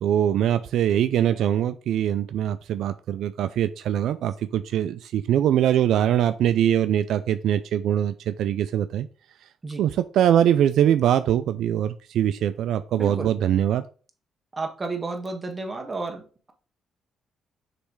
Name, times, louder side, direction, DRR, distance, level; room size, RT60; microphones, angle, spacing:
voice 1, 0.0-9.1 9.8-13.8, right 10 dB, 75° right, 11 dB, 0.3 m, -22 dB
voice 2, 12.9-13.3 14.5-16.5, right 3 dB, 25° right, 4 dB, 1.5 m, -32 dB
6.8 x 3.2 x 4.7 m, 0.38 s
cardioid pair, 90°, 0 cm